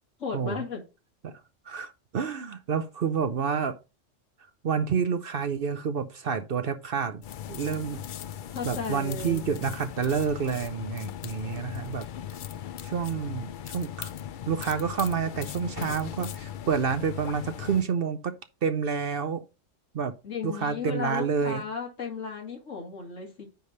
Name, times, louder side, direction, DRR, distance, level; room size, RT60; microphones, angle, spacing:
voice 1, 0.2-0.8 8.5-9.5 20.2-23.4, left 5 dB, 80° left, 2.4 m, -35 dB
voice 2, 1.6-3.8 4.6-7.2 7.5-8.0 8.6-12.1 12.8-14.1 14.5-18.4 18.6-19.4 19.9-20.1 20.4-21.6, right 6 dB, 55° right, 0.8 m, -29 dB
sound 1, 7.2-17.8, left 10 dB, 60° left, 0.5 m, -38 dB
9.3 x 3.3 x 5.4 m
omnidirectional pair, 1.3 m